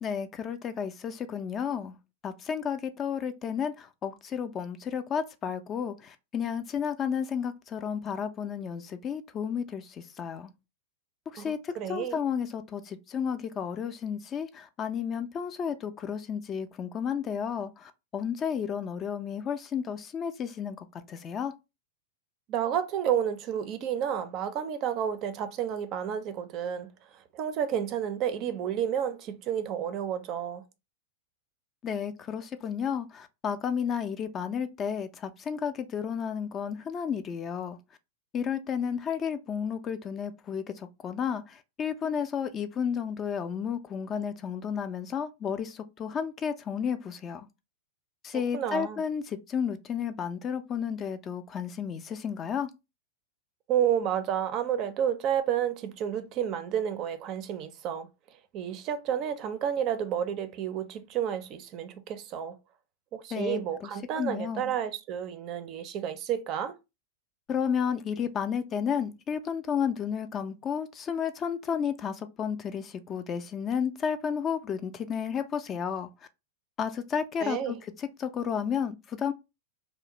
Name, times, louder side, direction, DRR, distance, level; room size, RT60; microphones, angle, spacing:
voice 1, 0.0-1.9 2.2-10.5 11.3-21.5 31.8-37.8 38.3-47.5 48.2-52.7 63.3-63.9 64.2-64.7 67.5-76.1 76.8-79.3, left 7 dB, 30° left, 0.3 m, -32 dB
voice 2, 11.4-12.2 22.5-26.9 27.3-30.6 48.5-49.0 53.7-58.1 58.5-62.6 63.1-66.8 77.4-77.7, right 9 dB, 40° right, 0.4 m, -30 dB
2.4 x 2.0 x 2.9 m
hypercardioid pair, 105°, 0 cm